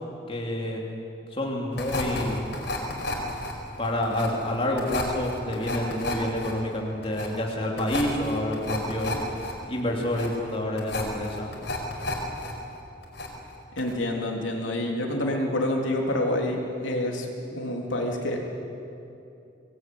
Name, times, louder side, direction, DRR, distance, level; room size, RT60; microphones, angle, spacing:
voice 1, 0.3-0.8 1.3-2.4 3.8-9.2 9.7-11.5, left 1 dB, 30° left, -1 dB, 3.2 m, -28 dB
sound 1, 1.8-12.5 12.8-13.5 13.8-13.9, left 2 dB, 55° left, 5.0 m, -33 dB
voice 2, 13.7-18.4, left 1 dB, 75° left, 0 dB, 3.5 m, -28 dB
25.0 x 20.0 x 9.5 m, 2.7 s
head